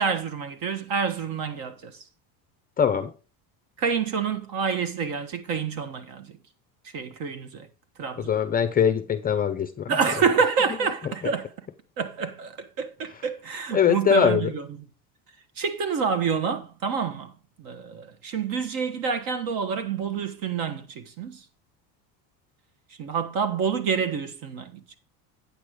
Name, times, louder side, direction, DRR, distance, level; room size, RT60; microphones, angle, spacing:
voice 1, 0.0-2.0 3.8-6.4 6.9-7.7 8.0-8.3 9.9-11.5 12.0-14.6 15.6-17.3 17.6-21.4 23.0-24.8, right 6 dB, 50° right, 1.4 m, -27 dB
voice 2, 2.8-3.1 8.2-10.0 13.7-14.5, left 7 dB, 20° left, 0.5 m, -22 dB
8.8 x 6.2 x 5.0 m
cardioid pair, 135°, 43 cm